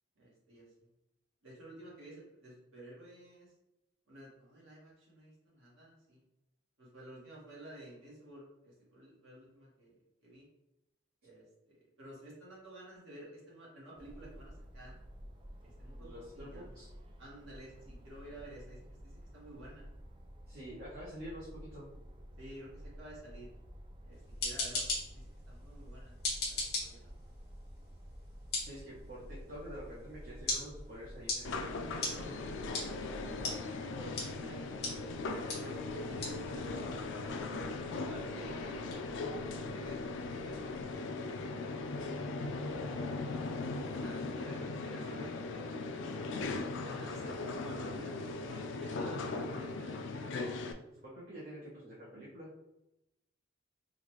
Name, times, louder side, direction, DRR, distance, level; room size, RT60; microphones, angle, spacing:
voice 1, 0.2-0.6 1.4-3.5 4.1-6.2 6.8-9.9 10.2-10.5 11.2-15.0 15.6-16.7 17.2-19.9 22.4-23.5 24.0-26.1 26.5-27.2 33.4-34.9 35.2-39.0 39.5-41.0 43.8-50.5, right 1 dB, 75° right, -5 dB, 1.4 m, -52 dB
sound 1, 14.0-33.5, equal, 25° right, 0.3 m, -51 dB
voice 2, 15.9-16.9 20.5-21.9 28.6-32.5 34.0-34.4 35.4-36.1 39.5-39.8 50.9-52.5, equal, 45° right, -7 dB, 0.8 m, -48 dB
sound 2, 24.1-40.9, left 3 dB, 50° left, 1.2 m, -42 dB
sound 3, 31.4-50.7, left 3 dB, 70° left, 0.3 m, -39 dB
3.8 x 2.4 x 3.1 m, 0.90 s
head